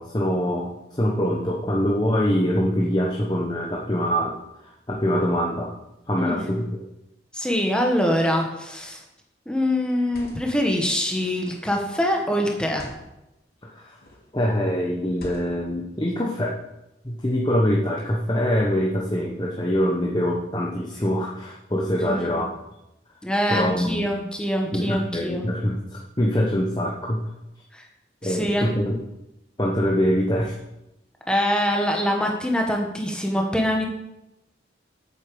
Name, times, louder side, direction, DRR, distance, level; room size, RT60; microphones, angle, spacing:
voice 1, 0.0-5.7 6.1-6.8 13.7-14.0 14.3-16.6 17.0-22.5 23.5-24.1 24.7-27.3 28.2-29.0 29.6-30.6, equal, 25° left, -1 dB, 1.2 m, -24 dB
voice 2, 6.2-6.5 7.3-9.0 9.4-12.9 22.0-22.4 23.2-25.4 27.7-27.9 28.2-28.7 31.3-33.8, equal, 5° left, 1 dB, 1.6 m, -24 dB
sound 1, 8.7-9.1 9.9-10.6 11.4-11.8 12.6-13.1 13.9-14.3 15.1-15.7, equal, 55° left, 3.2 m, -44 dB
8.5 x 8.4 x 7.1 m, 0.91 s
head